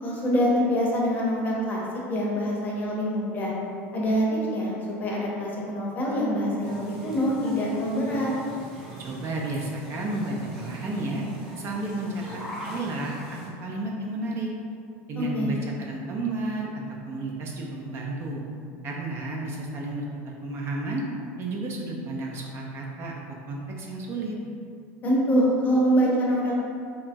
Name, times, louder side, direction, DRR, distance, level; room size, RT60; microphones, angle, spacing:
voice 1, 0.0-1.8 2.1-3.5 3.9-8.3 15.2-15.5 25.0-26.5, equal, 25° left, -4 dB, 0.6 m, -25 dB
sound 1, 6.6-13.5, right 1 dB, 5° right, 0.8 m, -41 dB
voice 2, 9.0-11.2 11.6-12.2 12.7-13.2 13.6-14.5 15.1-16.7 17.1-18.4 18.8-21.0 21.4-24.4, right 2 dB, 40° right, -2 dB, 0.4 m, -32 dB
2.9 x 2.2 x 2.5 m, 2.4 s
supercardioid pair, 120°, 7 cm